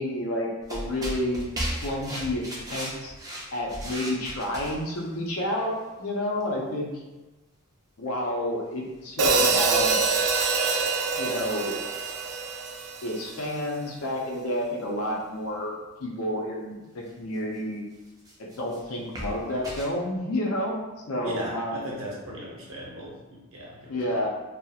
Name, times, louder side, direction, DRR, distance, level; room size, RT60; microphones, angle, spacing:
voice 1, 0.0-1.4 1.8-3.1 3.5-7.0 8.0-10.0 11.1-11.8 13.0-17.8 18.4-20.8 21.1-21.8 23.9-24.3, left 1 dB, 75° left, -1 dB, 0.5 m, -30 dB
sound 1, 0.6-5.1 6.4-6.5 9.0-9.1 9.7-10.0 10.4-10.5 17.1-17.2 17.9-19.8, right 1 dB, 15° right, 0.4 m, -36 dB
Hi-hat, 9.2-13.4, right 4 dB, 85° right, 0.4 m, -25 dB
voice 2, 21.2-24.1, equal, 65° right, -4 dB, 0.8 m, -37 dB
2.3 x 2.0 x 2.7 m, 1.1 s
head